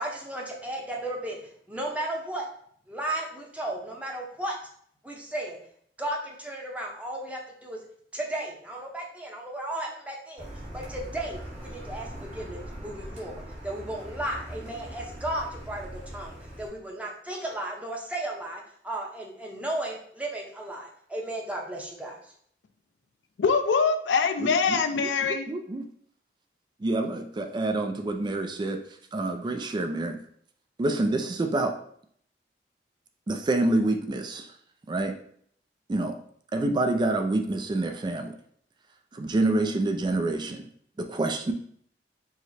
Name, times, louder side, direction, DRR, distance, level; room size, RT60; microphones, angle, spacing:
voice 1, 0.0-1.4 1.7-2.4 2.9-4.6 5.0-5.6 6.0-7.8 8.1-10.5 10.7-22.3, right 1 dB, 10° right, -1 dB, 0.7 m, -34 dB
Car, 10.4-16.7, right 1 dB, 40° right, 1.2 m, -41 dB
voice 2, 23.4-25.4, left 5 dB, 90° left, 8 dB, 0.4 m, -23 dB
voice 3, 24.4-25.9 26.8-28.8 29.1-30.2 30.8-31.8 33.3-34.5 34.9-35.2 35.9-36.2 36.5-38.3 39.1-40.7 41.0-41.5, right 2 dB, 25° right, 6 dB, 0.3 m, -27 dB
4.8 x 2.0 x 4.1 m, 0.62 s
head